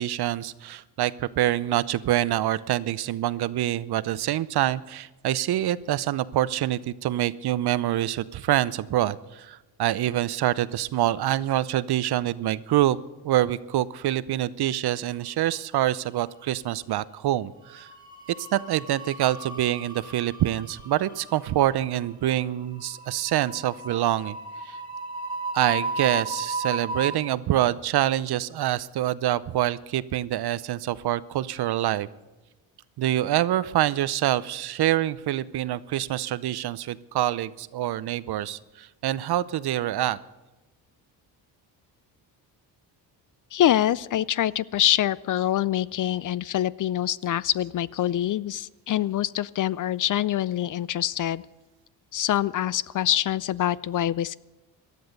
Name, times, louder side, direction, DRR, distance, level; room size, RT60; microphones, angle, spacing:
voice 1, 0.0-13.0 13.2-17.9 18.4-24.4 24.6-24.8 25.5-32.1 33.0-40.2, right 13 dB, 55° right, 17 dB, 0.7 m, -26 dB
sound 1, 15.2-15.9 16.1-16.4 17.6-27.1, right 2 dB, 10° right, 4.0 m, -36 dB
voice 2, 43.5-51.4 52.1-54.4, left 12 dB, 45° left, 21 dB, 0.4 m, -25 dB
18.5 x 12.5 x 5.3 m, 1.1 s
supercardioid pair, 75°, 45 cm